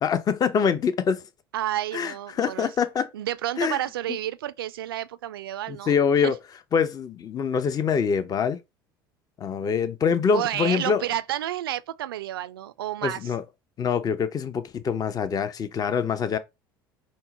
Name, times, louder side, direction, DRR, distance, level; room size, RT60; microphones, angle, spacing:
voice 1, 0.0-1.2 1.9-3.1 3.6-3.8 5.7-6.4 6.7-8.6 9.4-11.0 13.0-13.4 13.8-16.4, left 6 dB, 30° left, 0.6 m, -24 dB
voice 2, 1.5-2.7 3.1-5.9 6.2-6.3 10.3-13.3, right 13 dB, 75° right, 0.4 m, -30 dB
5.4 x 2.1 x 4.0 m
figure-of-eight pair, 65°, 12 cm